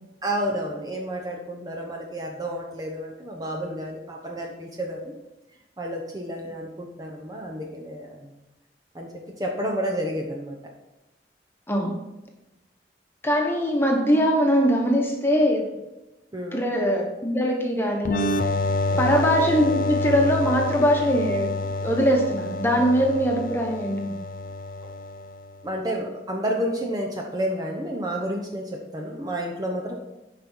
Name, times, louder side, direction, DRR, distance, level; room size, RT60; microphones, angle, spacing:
voice 1, 0.2-5.2 5.8-8.3 8.9-9.1 9.4-10.6 16.3-16.6 18.9-19.2 24.8-24.9 25.6-30.0, equal, 20° right, 0 dB, 0.9 m, -30 dB
voice 2, 11.7-12.0 13.2-15.7 16.5-18.3 19.0-21.5 21.8-24.1, equal, 15° left, 1 dB, 1.4 m, -22 dB
sound 1, 18.1-25.5, left 2 dB, 50° left, 0.6 m, -28 dB
10.0 x 5.4 x 4.6 m, 1.0 s
head